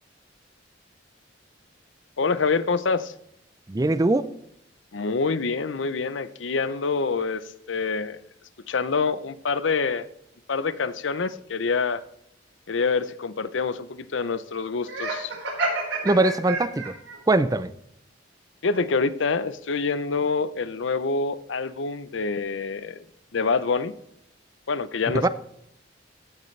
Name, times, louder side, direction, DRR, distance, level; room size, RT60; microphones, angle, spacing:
voice 1, 2.2-3.1 4.9-8.2 8.7-10.1 10.5-12.0 12.7-15.4 18.6-23.0 23.3-23.9 24.7-25.3, left 4 dB, 80° left, 0.6 m, -26 dB
voice 2, 3.7-4.3 16.0-16.9 17.3-17.7 25.1-25.3, right 2 dB, 20° right, 0.4 m, -21 dB
Laughter, 14.8-17.2, right 3 dB, 85° right, 4.6 m, -29 dB
16.0 x 6.7 x 3.3 m
head